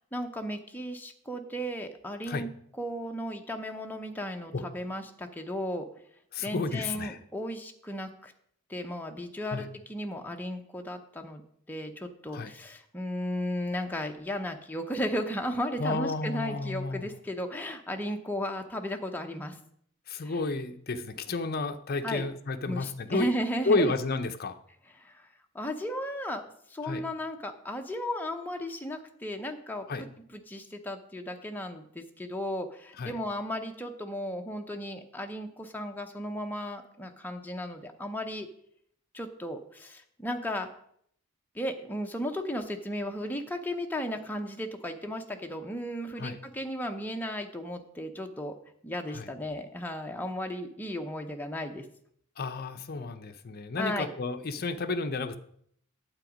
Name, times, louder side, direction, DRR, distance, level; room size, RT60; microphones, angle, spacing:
voice 1, 0.1-2.5 2.8-5.8 6.4-8.3 8.7-11.4 11.7-19.6 20.2-20.4 22.0-22.3 22.7-23.9 25.0-25.3 25.5-38.5 39.1-40.7 41.5-48.5 48.8-51.8 53.8-54.1, equal, 10° left, 4 dB, 0.7 m, -35 dB
voice 2, 6.3-7.2 9.5-9.7 12.3-12.5 15.8-17.1 20.1-23.3 23.6-24.6 26.8-27.1 29.9-30.1 33.0-33.2 46.2-46.4 49.1-49.3 52.4-55.4, left 3 dB, 45° left, 9 dB, 0.6 m, -31 dB
8.9 x 7.9 x 5.0 m, 0.67 s
head